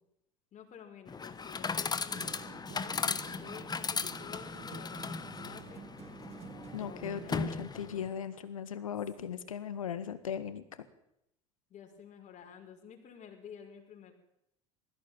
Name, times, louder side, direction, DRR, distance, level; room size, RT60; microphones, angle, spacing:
voice 1, 0.5-5.9 6.8-8.1 11.7-14.1, left 7 dB, 45° left, 4 dB, 5.7 m, -51 dB
Chatter / Coin (dropping), 1.1-8.1, left 5 dB, 25° left, 1.4 m, -37 dB
sound 1, 2.1-7.4, right 7 dB, 40° right, 2.1 m, -49 dB
voice 2, 6.7-10.6, left 8 dB, 85° left, 13 dB, 1.8 m, -38 dB
20.5 x 15.5 x 9.1 m, 0.81 s
hypercardioid pair, 70°, 17 cm